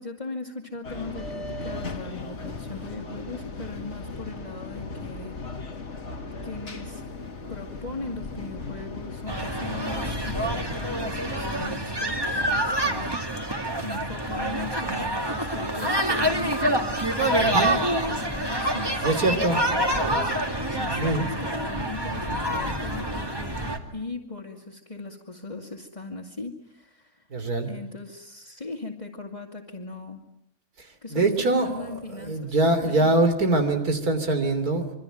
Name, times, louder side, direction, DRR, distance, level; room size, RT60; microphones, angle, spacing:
voice 1, 0.0-5.4 6.4-7.1 7.5-27.3 27.7-30.2 31.0-33.1, left 3 dB, 20° left, -3 dB, 2.4 m, -39 dB
sound 1, 0.8-11.7, left 3 dB, 50° left, 2.2 m, -37 dB
sound 2, 9.3-23.8, right 1 dB, 15° right, 2.3 m, -27 dB
voice 2, 17.4-17.8 19.0-19.6 20.9-21.3 27.3-27.7 30.8-34.9, right 2 dB, 90° right, 8 dB, 3.6 m, -24 dB
26.5 x 24.0 x 9.2 m, 0.76 s
omnidirectional pair, 1.5 m